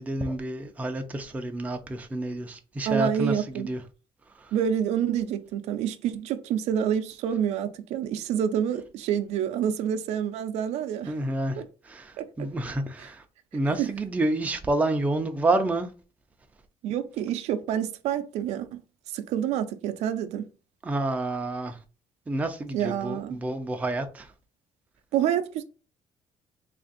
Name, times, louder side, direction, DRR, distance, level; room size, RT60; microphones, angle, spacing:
voice 1, 0.0-3.8 4.3-4.5 11.1-13.2 13.5-15.9 20.8-21.8 22.3-24.3, right 2 dB, 10° right, 0.4 m, -29 dB
voice 2, 2.9-3.7 4.5-11.1 11.6-11.7 12.2-12.5 13.8-13.9 16.8-18.8 19.1-20.5 22.7-23.4 25.1-25.6, right 9 dB, 75° right, 0.4 m, -28 dB
3.3 x 2.5 x 3.8 m
cardioid pair, 145°, 11 cm